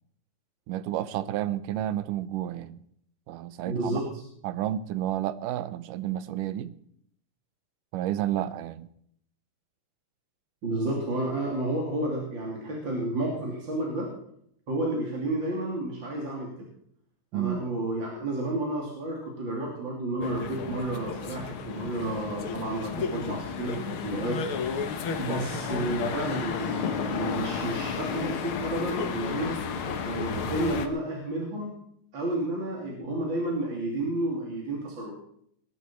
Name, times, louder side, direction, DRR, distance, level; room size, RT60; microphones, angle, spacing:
voice 1, 0.7-2.8 3.3-4.0 4.4-6.7 7.9-8.9 17.3-17.6, right 12 dB, 80° right, 2.3 m, -31 dB
voice 2, 3.6-4.2 10.6-14.1 14.7-16.5 17.3-24.4 25.2-29.6 30.0-31.8 32.1-35.1, right 1 dB, 35° right, 3.3 m, -31 dB
sound 1, 20.2-30.9, left 6 dB, 60° left, 1.4 m, -32 dB
19.5 x 11.5 x 4.5 m
omnidirectional pair, 3.9 m